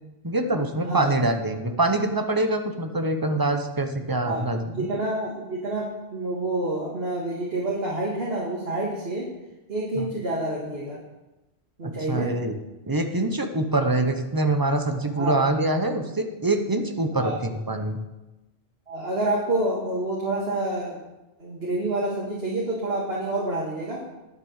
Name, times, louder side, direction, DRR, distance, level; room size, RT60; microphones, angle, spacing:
voice 1, 0.2-4.9 10.0-10.1 11.8-12.5 12.9-18.0, right 2 dB, 20° right, 6 dB, 0.8 m, -25 dB
voice 2, 4.2-9.3 9.7-11.0 11.8-12.3 15.1-15.4 17.2-17.4 18.9-21.0 21.4-24.0, right 1 dB, 60° right, -4 dB, 2.0 m, -28 dB
9.8 x 6.7 x 6.6 m, 1.0 s
omnidirectional pair, 1.2 m